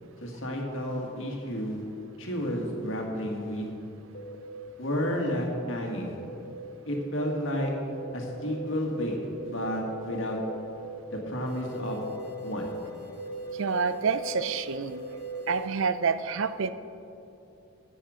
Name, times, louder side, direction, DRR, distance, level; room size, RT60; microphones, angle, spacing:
voice 1, 0.2-1.8 2.2-3.7 4.8-6.1 6.9-7.7 8.1-9.2 9.4-10.4 11.1-12.1 12.4-12.7, equal, 65° left, 0 dB, 1.8 m, -31 dB
sound 1, 4.1-4.3 5.2-5.4 6.2-6.4 7.2-7.4 7.6-7.8 8.1-8.3 8.6-8.8 9.1-9.3 9.5-9.8 10.0-10.2 10.5-10.7 11.0-11.2 11.5-15.7, equal, 45° left, 1.8 m, -39 dB
voice 2, 13.6-15.0 15.5-16.7, right 5 dB, 70° right, 13 dB, 0.5 m, -28 dB
12.5 x 8.2 x 5.0 m, 2.8 s
head